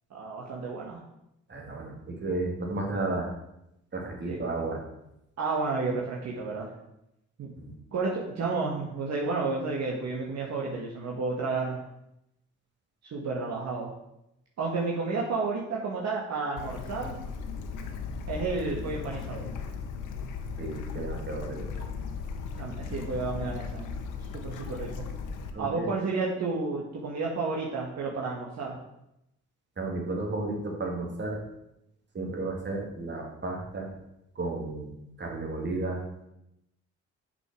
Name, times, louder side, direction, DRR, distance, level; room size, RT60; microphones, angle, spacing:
voice 1, 0.1-1.0 4.2-4.6 5.4-6.7 7.4-7.5 7.9-11.8 13.1-13.9 14.6-17.1 18.3-19.4 22.5-24.0 24.3-25.0 25.6-28.8, right 3 dB, 60° right, -2 dB, 1.7 m, -31 dB
voice 2, 1.5-3.3 3.9-4.8 7.6-7.7 20.6-21.9 25.5-25.9 29.8-31.4 32.1-33.9 34.3-34.9 35.2-36.0, right 2 dB, 35° right, 0 dB, 2.6 m, -33 dB
Bird / Stream, 16.6-25.5, left 5 dB, 90° left, 1.0 m, -37 dB
6.8 x 6.0 x 6.2 m, 0.84 s
cardioid pair, 90°, 30 cm